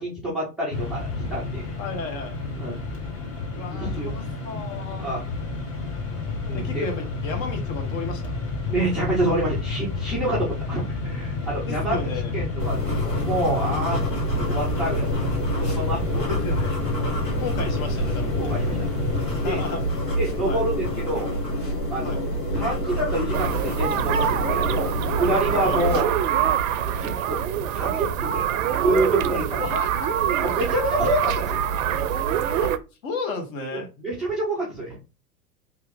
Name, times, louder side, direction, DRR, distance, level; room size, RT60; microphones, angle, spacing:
voice 1, 0.0-1.8 2.6-2.8 3.8-4.1 5.0-5.2 6.4-6.9 8.7-12.0 12.3-15.3 15.5-16.4 17.0-17.2 18.4-18.9 19.4-19.6 20.2-21.4 21.9-22.2 22.5-26.1 26.8-27.4 27.7-29.7 30.4-31.6 33.7-35.0, right 1 dB, ahead, 0.3 m, -27 dB
Mechanisms, 0.7-20.2, left 3 dB, 30° left, 0.9 m, -30 dB
voice 2, 1.8-2.4 3.5-5.1 6.5-8.4 11.7-12.4 16.1-16.8 17.4-18.5 19.4-19.8 20.4-20.6 22.0-22.2 25.6-25.8 29.6-30.1 32.6-32.7 33.0-33.9, left 3 dB, 55° left, 1.2 m, -33 dB
sound 1, 12.6-26.0, equal, 90° left, 1.5 m, -27 dB
sound 2, 23.3-32.8, right 9 dB, 55° right, 0.5 m, -25 dB
2.9 x 2.4 x 3.3 m
hypercardioid pair, 105°, 48 cm